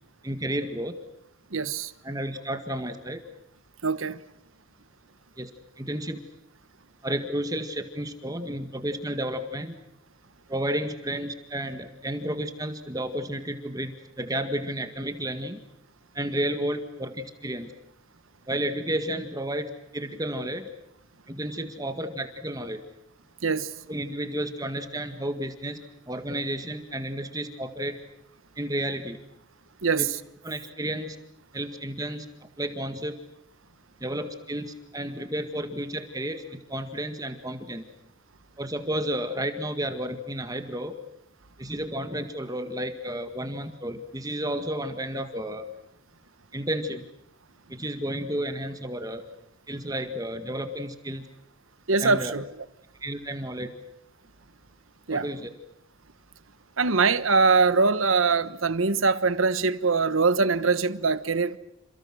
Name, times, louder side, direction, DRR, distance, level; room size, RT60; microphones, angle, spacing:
voice 1, 0.2-1.0 2.0-3.2 5.4-5.5 5.8-6.2 7.0-9.7 10.5-13.9 14.2-15.6 16.1-17.7 18.5-20.7 21.3-22.8 23.9-25.8 26.1-28.0 28.6-29.2 30.0-30.1 30.4-31.2 31.5-32.3 32.6-33.2 34.0-37.9 38.6-40.9 41.6-45.7 46.5-47.0 47.7-49.2 49.7-51.2 52.0-52.3 53.0-53.7 55.1-55.5, right 1 dB, 20° right, 1.9 m, -32 dB
voice 2, 1.5-1.9 3.8-4.2 23.4-23.7 29.8-30.1 51.9-52.4 55.1-55.3 56.8-61.6, right 4 dB, 90° right, 1.2 m, -23 dB
29.0 x 28.0 x 6.3 m
head